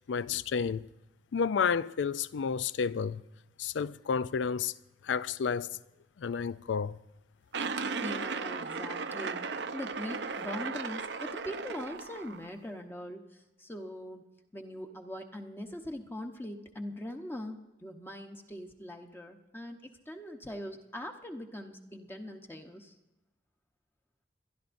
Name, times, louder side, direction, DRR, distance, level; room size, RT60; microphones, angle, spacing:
voice 1, 0.1-0.9 1.3-3.2 3.6-4.7 5.0-5.8 6.2-7.0, left 6 dB, 90° left, 0.4 m, -31 dB
sound 1, 7.5-12.5, right 4 dB, 70° right, 0.7 m, -36 dB
voice 2, 7.6-23.0, left 1 dB, 10° left, 0.9 m, -42 dB
26.0 x 12.0 x 2.6 m
head